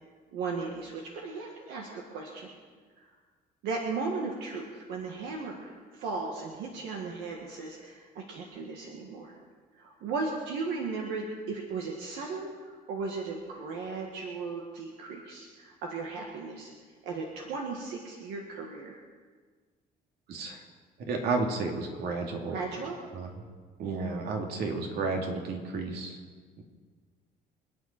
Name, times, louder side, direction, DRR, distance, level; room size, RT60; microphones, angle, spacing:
voice 1, 0.3-2.5 3.6-9.4 9.8-16.7 17.0-19.0 22.5-23.0, right 4 dB, 90° right, 0 dB, 1.9 m, -36 dB
voice 2, 20.3-20.6 21.1-22.6 23.1-23.3 23.8-26.2 26.6-26.7, right 3 dB, 75° right, 2 dB, 2.6 m, -32 dB
27.0 x 9.5 x 4.5 m, 1.5 s
cardioid pair, 110°, 17 cm